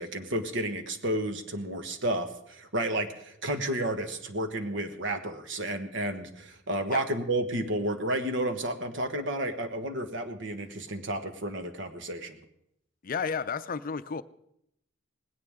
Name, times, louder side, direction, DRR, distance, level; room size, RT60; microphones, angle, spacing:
voice 1, 0.0-12.4, right 1 dB, 65° right, 7 dB, 1.4 m, -31 dB
voice 2, 13.0-14.2, left 5 dB, 45° left, 13 dB, 0.5 m, -32 dB
19.0 x 17.5 x 3.7 m, 0.75 s
head